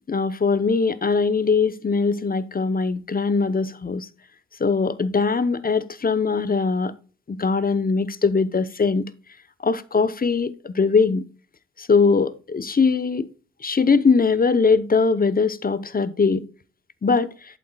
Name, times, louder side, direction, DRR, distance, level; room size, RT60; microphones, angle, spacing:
voice 1, 0.1-4.1 4.6-6.9 7.3-9.0 9.6-11.2 11.9-13.3 13.6-16.4 17.0-17.3, left 4 dB, 30° left, 0.8 m, -21 dB
8.3 x 7.5 x 2.3 m
supercardioid pair, 45°, 31 cm